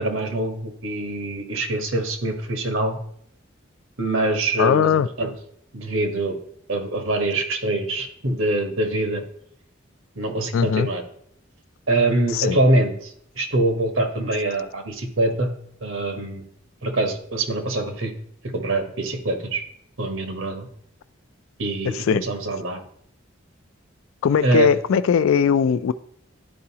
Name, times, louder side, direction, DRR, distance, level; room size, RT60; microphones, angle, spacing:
voice 1, 0.0-3.0 4.0-5.3 5.7-6.4 6.7-9.2 10.2-11.0 11.9-15.5 15.8-16.4 16.8-18.1 18.4-19.6 20.0-20.7 21.6-22.8 24.4-24.7, right 2 dB, 80° right, 6 dB, 1.1 m, -24 dB
voice 2, 4.6-5.1 10.5-10.9 12.3-12.6 21.9-22.2 24.2-25.9, left 7 dB, 85° left, 14 dB, 0.3 m, -19 dB
11.5 x 4.8 x 2.8 m, 0.67 s
head